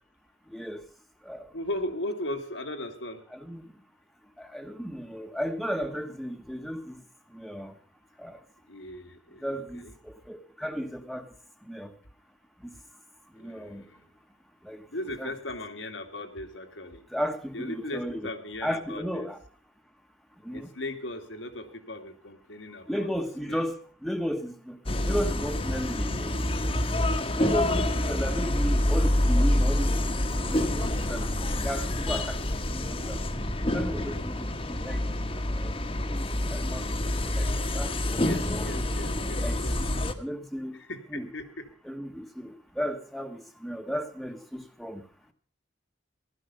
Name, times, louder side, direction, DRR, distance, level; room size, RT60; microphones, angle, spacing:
voice 1, 0.5-0.8 1.2-1.5 3.3-3.6 4.4-7.0 7.3-7.7 8.2-8.4 9.4-11.3 11.6-11.9 12.6-12.7 13.3-13.8 14.6-14.8 15.2-15.3 17.1-18.3 18.6-19.4 20.4-20.7 22.9-24.8 25.1-26.4 27.4-32.4 32.7-33.2 33.7-35.2 35.5-37.1 37.3-38.9 39.4-39.9 40.2-40.8 41.1-41.3 41.8-45.0, equal, ahead, 1.2 m, -35 dB
voice 2, 1.5-3.2 8.7-9.9 13.4-14.0 14.9-17.0 17.5-19.3 20.5-23.1 23.5-23.6 27.3-28.1 38.2-39.8 40.9-41.7, left 1 dB, 80° left, 2.0 m, -38 dB
sound 1, 24.9-40.1, left 1 dB, 30° left, 1.2 m, -27 dB
15.5 x 12.5 x 5.4 m
head